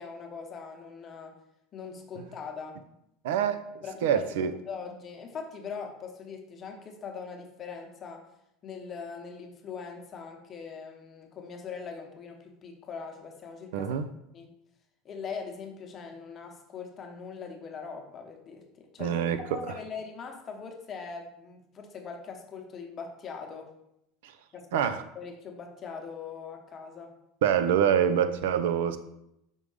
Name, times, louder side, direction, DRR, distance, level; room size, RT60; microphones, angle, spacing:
voice 1, 0.0-1.3 1.7-2.8 3.8-8.3 8.6-13.9 14.3-14.5 15.0-23.7 24.5-24.9 25.1-27.1, left 5 dB, 30° left, 0.9 m, -41 dB
voice 2, 3.2-3.6 4.0-4.5 13.7-14.1 19.0-19.6 24.7-25.0 27.4-29.0, right 9 dB, 90° right, 0.5 m, -25 dB
5.4 x 3.5 x 4.9 m
supercardioid pair, 135°, 0 cm